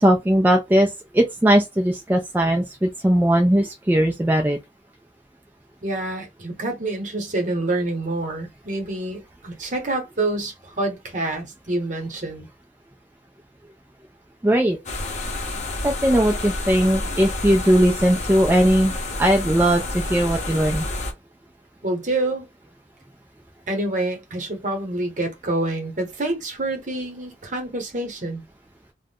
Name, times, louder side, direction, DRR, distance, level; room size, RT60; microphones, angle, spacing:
voice 1, 0.0-4.6 14.4-14.8 15.8-18.9 19.2-20.8, right 1 dB, 10° right, 0.3 m, -19 dB
voice 2, 5.8-12.5 21.8-22.5 23.7-28.4, right 2 dB, 45° right, 0.9 m, -27 dB
sound 1, 14.8-21.1, left 2 dB, 40° left, 0.7 m, -29 dB
2.4 x 2.1 x 3.4 m
head